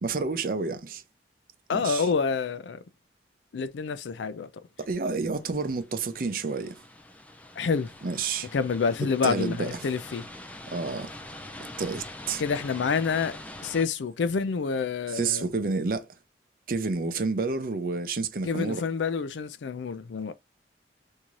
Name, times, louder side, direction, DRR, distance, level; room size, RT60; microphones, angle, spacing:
voice 1, 0.0-1.0 1.7-2.1 4.8-6.8 8.0-8.5 9.2-9.8 10.7-11.1 11.8-12.4 15.1-16.1 16.7-18.9, right 4 dB, 50° right, 0.5 m, -29 dB
voice 2, 1.7-2.8 3.5-4.5 7.6-7.9 8.5-10.2 12.4-15.5 18.5-20.3, left 5 dB, 90° left, 0.4 m, -28 dB
sound 1, 5.5-13.8, left 1 dB, 10° left, 0.3 m, -44 dB
3.1 x 2.7 x 3.6 m
head